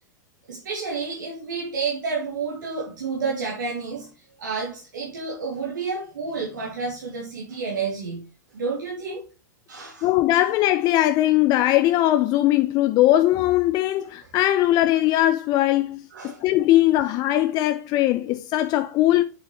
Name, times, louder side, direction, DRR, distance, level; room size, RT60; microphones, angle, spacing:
voice 1, 0.5-4.1 4.4-8.2 8.5-9.2 9.7-10.1 16.1-16.4, right 4 dB, 75° right, 2.9 m, -30 dB
voice 2, 10.0-19.2, left 14 dB, 40° left, 0.8 m, -20 dB
7.8 x 7.8 x 3.2 m
hypercardioid pair, 95°, 10 cm